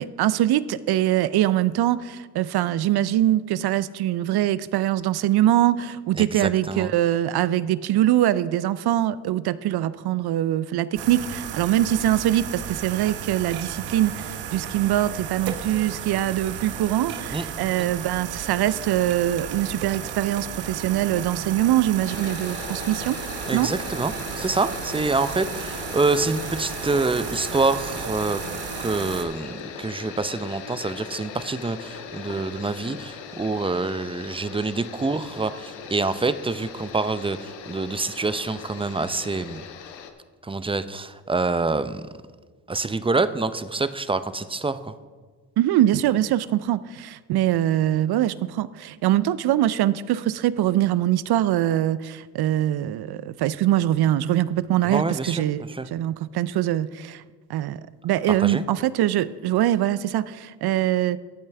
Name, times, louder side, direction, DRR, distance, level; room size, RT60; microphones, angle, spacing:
voice 1, 0.0-23.2 23.5-23.7 45.6-55.6 55.9-57.2 57.5-61.2, right 13 dB, 60° right, 17 dB, 0.6 m, -23 dB
voice 2, 6.2-6.9 17.3-17.5 23.5-28.4 28.8-39.6 40.4-42.0 42.7-44.9 54.8-55.4 55.7-55.9 58.4-58.6, right 3 dB, 10° right, 13 dB, 0.5 m, -26 dB
sound 1, 11.0-29.2, right 8 dB, 75° right, 1.0 m, -34 dB
sound 2, 22.0-40.1, left 7 dB, 85° left, 1.0 m, -39 dB
14.5 x 8.5 x 3.4 m, 1.4 s
hypercardioid pair, 50°, 45 cm